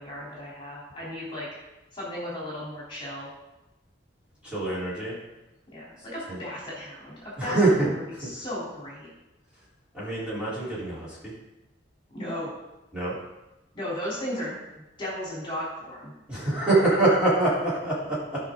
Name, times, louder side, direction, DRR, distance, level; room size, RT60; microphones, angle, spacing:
voice 1, 0.0-1.5 1.9-3.3 5.7-9.1 12.1-12.5 13.7-14.6 15.0-16.1, equal, 25° left, -7 dB, 3.4 m, -35 dB
voice 2, 4.4-5.1 6.3-6.4 7.4-8.3 9.9-11.3 12.9-13.2 16.3-18.5, right 2 dB, 5° right, -10 dB, 3.8 m, -25 dB
16.5 x 5.8 x 3.9 m, 0.99 s
head